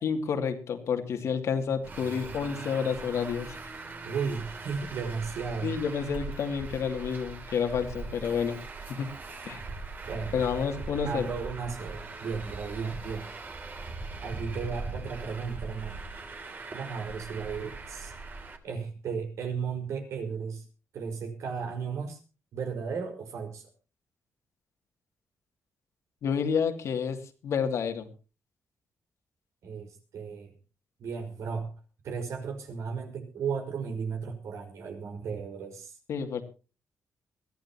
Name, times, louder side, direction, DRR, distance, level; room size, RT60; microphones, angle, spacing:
voice 1, 0.0-3.6 5.6-8.6 8.9-9.1 9.4-9.6 10.3-11.3 26.2-27.2 27.4-28.1 36.1-36.4, left 6 dB, 70° left, 5 dB, 2.6 m, -29 dB
Traffic noise roadway noise, 1.8-18.6, right 3 dB, 40° right, 3.0 m, -41 dB
voice 2, 4.0-5.8 10.1-10.5 11.0-13.3 14.2-16.1 16.7-18.1 18.6-20.7 20.9-22.2 22.5-23.7 29.6-30.5 31.0-31.7 32.0-36.0, right 5 dB, 75° right, 4 dB, 5.4 m, -35 dB
22.5 x 14.5 x 3.0 m, 0.33 s
cardioid pair, 115°, 5 cm